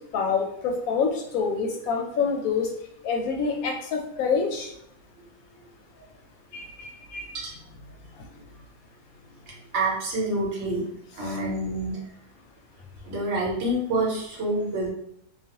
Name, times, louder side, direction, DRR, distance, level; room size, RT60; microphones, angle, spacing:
voice 1, 0.1-2.7 3.0-4.7 6.5-7.3, left 5 dB, 70° left, 2 dB, 1.0 m, -26 dB
voice 2, 9.7-10.8 11.2-11.9 13.0-14.9, right 1 dB, 50° right, -3 dB, 1.0 m, -27 dB
2.4 x 2.4 x 2.8 m, 0.73 s
omnidirectional pair, 1.6 m